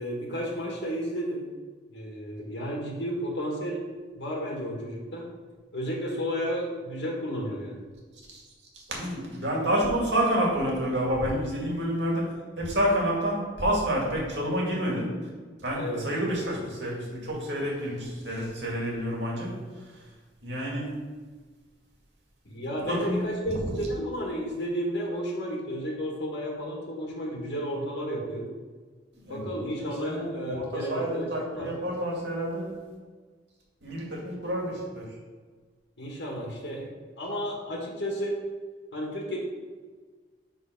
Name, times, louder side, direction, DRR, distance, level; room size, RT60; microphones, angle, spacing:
voice 1, 0.0-1.4 1.9-3.9 4.2-5.3 5.7-7.8 15.7-16.1 22.4-28.5 29.3-31.7 36.0-38.4 38.9-39.4, equal, 70° left, -1 dB, 1.5 m, -32 dB
voice 2, 8.7-12.2 12.6-15.1 15.6-20.1 20.4-21.0 22.9-23.7 29.1-32.7 33.8-35.1, equal, 75° right, -2 dB, 2.2 m, -29 dB
5.7 x 5.6 x 5.2 m, 1.4 s
head